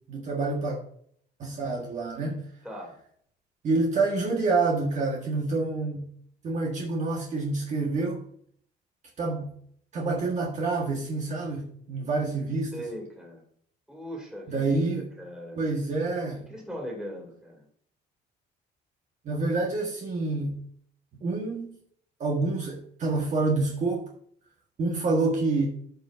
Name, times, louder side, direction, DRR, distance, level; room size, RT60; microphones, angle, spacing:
voice 1, 0.1-0.8 1.4-2.4 3.6-6.1 6.4-8.2 9.2-9.5 9.9-12.9 14.5-15.0 15.6-16.4 19.2-20.5 21.2-21.8 22.2-24.1 24.8-25.7, right 3 dB, 40° right, -1 dB, 1.6 m, -27 dB
voice 2, 2.6-3.0 12.7-13.4 13.9-15.6 16.5-17.6, equal, 5° right, -1 dB, 2.7 m, -39 dB
13.5 x 5.5 x 2.7 m, 0.63 s
cardioid pair, 160°, 18 cm